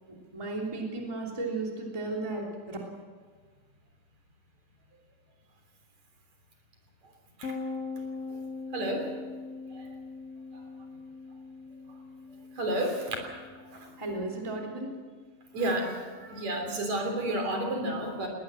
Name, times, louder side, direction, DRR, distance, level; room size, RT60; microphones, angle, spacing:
voice 1, 0.1-2.8 14.0-14.9, right 2 dB, 10° right, -1 dB, 2.8 m, -34 dB
sound 1, 7.4-16.9, left 4 dB, 60° left, 2.4 m, -42 dB
voice 2, 8.7-9.1 9.7-9.9 12.6-13.2 13.7-13.9 15.5-18.3, right 1 dB, 60° right, 3 dB, 4.6 m, -31 dB
20.5 x 19.5 x 7.7 m, 1.5 s
omnidirectional pair, 3.6 m